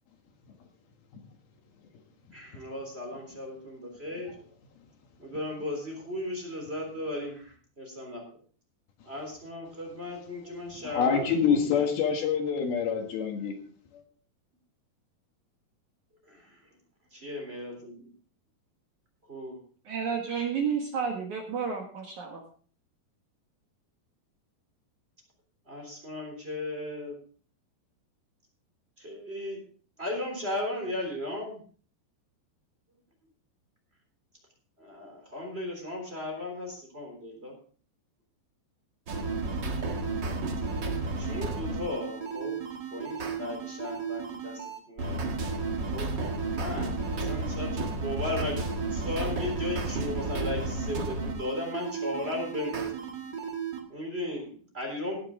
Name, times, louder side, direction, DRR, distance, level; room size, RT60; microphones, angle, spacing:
voice 1, 2.3-4.3 5.2-8.3 9.0-11.8 16.3-16.5 17.1-18.1 19.3-19.6 25.7-27.2 29.0-29.6 30.0-31.6 34.8-37.6 41.2-42.6 42.9-45.3 45.9-46.1 46.5-53.0 53.9-55.2, left 1 dB, 15° right, 3.2 m, -36 dB
voice 2, 10.8-13.6 13.9-14.0, left 7 dB, 65° left, 3.3 m, -26 dB
voice 3, 19.9-22.4, right 6 dB, 55° right, 2.4 m, -31 dB
sound 1, 39.1-53.8, right 3 dB, 80° right, 1.0 m, -33 dB
17.5 x 8.8 x 3.7 m
omnidirectional pair, 4.9 m